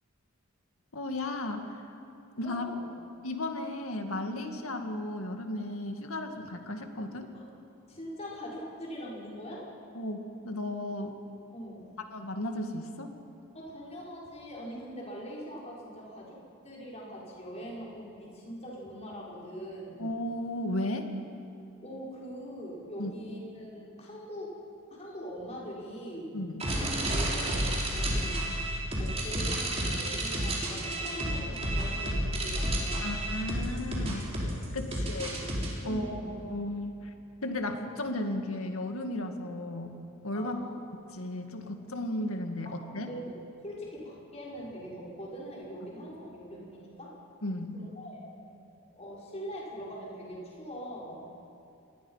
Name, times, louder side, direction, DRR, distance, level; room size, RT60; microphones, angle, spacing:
voice 1, 0.9-1.9 2.4-2.7 3.2-7.3 9.9-10.2 10.4-11.1 12.1-13.1 20.0-21.1 23.0-23.1 26.3-26.6 33.0-34.3 34.7-35.4 35.8-36.9 37.4-39.9 40.2-40.6 41.1-43.1 47.4-47.8, left 1 dB, 80° left, 5 dB, 2.1 m, -34 dB
voice 2, 2.4-2.9 7.3-7.4 7.9-9.6 11.5-11.9 13.5-20.0 21.8-24.5 24.9-26.3 27.1-28.4 29.0-33.3 34.7-35.0 35.8-36.3 40.3-40.7 42.6-43.4 43.6-47.1 47.7-48.2 48.8-51.2, equal, 30° left, -5 dB, 5.6 m, -42 dB
sound 1, 26.6-35.7, right 1 dB, 30° right, 4.4 m, -31 dB
27.0 x 20.5 x 5.8 m, 2.8 s
head